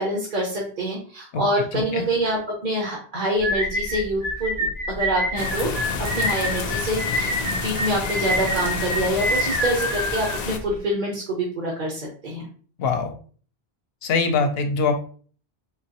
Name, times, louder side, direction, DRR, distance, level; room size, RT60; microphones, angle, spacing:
voice 1, 0.0-5.7 6.0-12.5, right 1 dB, 50° right, -3 dB, 1.0 m, -26 dB
voice 2, 1.7-2.0 12.8-13.1 14.0-15.0, left 4 dB, 70° left, 6 dB, 0.8 m, -23 dB
sound 1, 3.4-10.8, equal, 75° right, 1.4 m, -27 dB
sound 2, 5.4-10.6, left 5 dB, 55° left, 0.5 m, -30 dB
3.8 x 3.0 x 2.9 m, 0.43 s
omnidirectional pair, 1.1 m